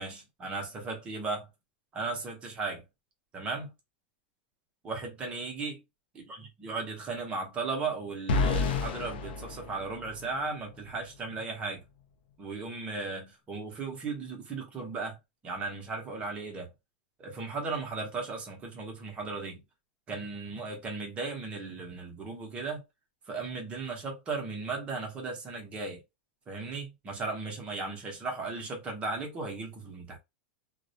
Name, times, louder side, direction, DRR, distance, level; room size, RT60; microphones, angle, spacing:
voice 1, 0.0-1.5 1.9-2.8 3.3-3.7 4.8-5.8 6.1-11.8 12.4-15.2 15.4-16.7 17.2-19.6 20.1-22.8 23.3-26.0 26.5-30.2, right 3 dB, 20° right, 0.7 m, -36 dB
sound 1, 8.3-10.4, left 4 dB, 85° left, 0.5 m, -30 dB
2.3 x 2.1 x 2.7 m
supercardioid pair, 155°, 6 cm